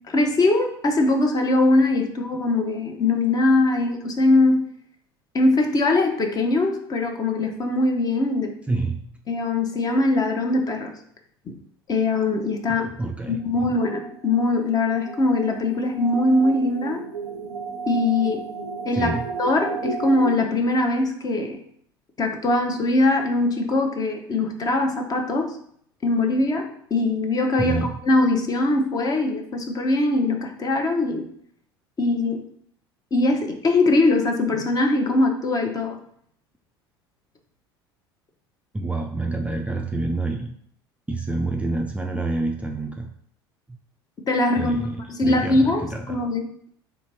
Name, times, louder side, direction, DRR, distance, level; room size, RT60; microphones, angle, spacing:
voice 1, 0.1-4.6 5.3-8.5 9.3-10.9 11.9-12.9 13.3-17.0 17.9-18.4 18.8-21.6 22.2-25.6 26.0-31.3 32.0-32.4 33.1-36.0 44.3-44.8 45.2-46.4, left 2 dB, 30° left, 3 dB, 0.8 m, -21 dB
voice 2, 8.7-9.1 12.7-13.4 19.0-19.3 27.6-28.0 38.7-40.5 41.1-43.1 44.6-46.2, right 2 dB, 10° right, 2 dB, 0.4 m, -27 dB
sound 1, 13.6-20.4, right 3 dB, 90° right, 0.4 m, -33 dB
3.5 x 2.8 x 4.3 m, 0.67 s
figure-of-eight pair, 70°, 13 cm